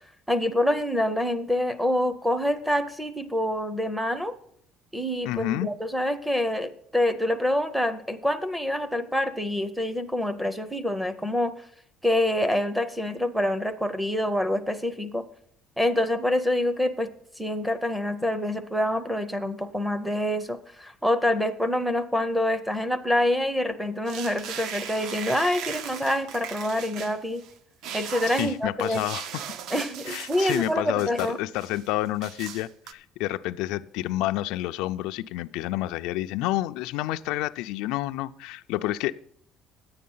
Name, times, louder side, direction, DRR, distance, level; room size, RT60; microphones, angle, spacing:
voice 1, 0.3-4.3 4.9-11.5 12.0-15.2 15.8-17.1 17.4-27.4 27.9-29.0 29.7-31.4, left 1 dB, 5° right, 13 dB, 0.5 m, -26 dB
voice 2, 5.3-5.7 28.4-29.4 30.1-39.2, left 15 dB, 75° left, 11 dB, 0.3 m, -29 dB
Scotch Tape, 24.1-27.5 27.8-30.7 31.0-31.9 32.2-32.9, right 8 dB, 55° right, 0.5 m, -38 dB
10.0 x 8.5 x 5.5 m, 0.64 s
cardioid pair, 180°, 0 cm